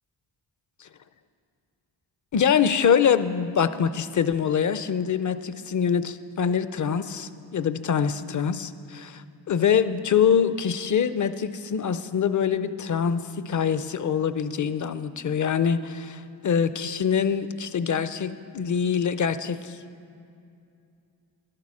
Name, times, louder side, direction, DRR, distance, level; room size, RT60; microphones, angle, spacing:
voice 1, 2.3-19.8, left 7 dB, 40° left, 13 dB, 0.5 m, -24 dB
12.0 x 7.5 x 6.2 m, 2.5 s
supercardioid pair, 50°, 49 cm